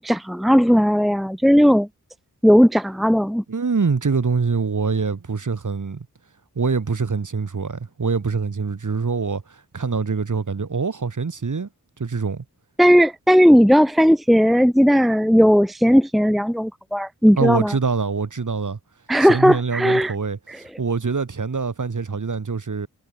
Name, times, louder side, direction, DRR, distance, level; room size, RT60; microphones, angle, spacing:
voice 1, 0.0-1.9 2.4-3.4 12.8-17.7 19.1-20.1 20.5-20.6, equal, ahead, 1.0 m, -16 dB
voice 2, 3.5-6.1 6.6-11.7 12.0-12.4 17.4-18.8 19.2-22.9, right 5 dB, 65° right, 4.0 m, -24 dB
cardioid pair, 50°, 33 cm